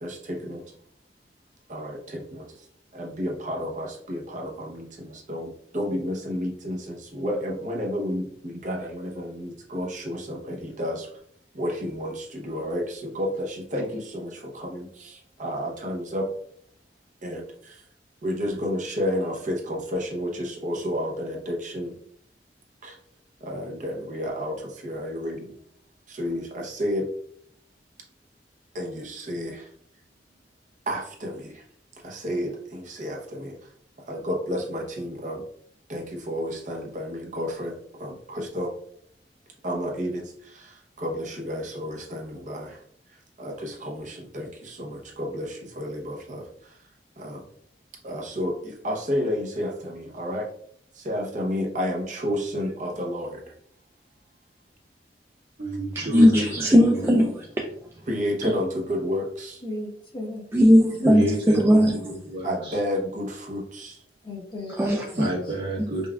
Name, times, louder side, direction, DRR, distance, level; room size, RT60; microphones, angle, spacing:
voice 1, 0.0-0.6 1.7-2.4 2.9-11.1 11.5-16.2 17.2-17.4 18.2-21.9 22.8-22.9 23.4-24.6 24.8-25.5 26.1-27.1 28.7-29.6 30.9-31.5 32.0-33.5 34.1-35.4 35.9-37.7 38.0-38.7 39.6-40.2 41.0-42.8 43.4-46.4 47.2-47.4 48.0-50.5 51.0-53.4 58.1-59.6 62.4-63.9, equal, 45° right, 0 dB, 0.8 m, -31 dB
voice 2, 55.6-56.5 56.8-57.0 61.0-62.8 65.2-66.1, right 1 dB, 75° right, -4 dB, 1.4 m, -29 dB
voice 3, 56.1-57.7 60.5-61.2 61.5-62.0 64.8-65.3 65.8-65.9, equal, 15° right, 0 dB, 0.3 m, -18 dB
voice 4, 59.6-60.5 60.9-61.3 64.2-65.6, left 1 dB, 30° left, -2 dB, 1.1 m, -36 dB
5.3 x 2.3 x 2.3 m, 0.65 s
head